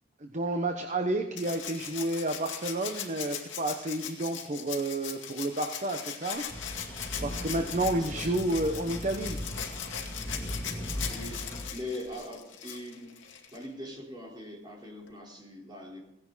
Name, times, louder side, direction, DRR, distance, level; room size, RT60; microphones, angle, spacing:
voice 1, 0.2-6.4 7.2-9.4, right 1 dB, 40° right, 5 dB, 1.0 m, -30 dB
Rattle (instrument), 1.4-13.7 15.1-15.2, left 8 dB, 70° left, 2.3 m, -40 dB
sound 1, 6.5-11.7, left 1 dB, 15° left, 2.2 m, -38 dB
voice 2, 7.6-8.4 11.1-11.5 11.7-13.2 13.5-16.0, left 1 dB, 25° right, -3 dB, 4.4 m, -42 dB
17.0 x 11.0 x 4.1 m, 0.88 s
head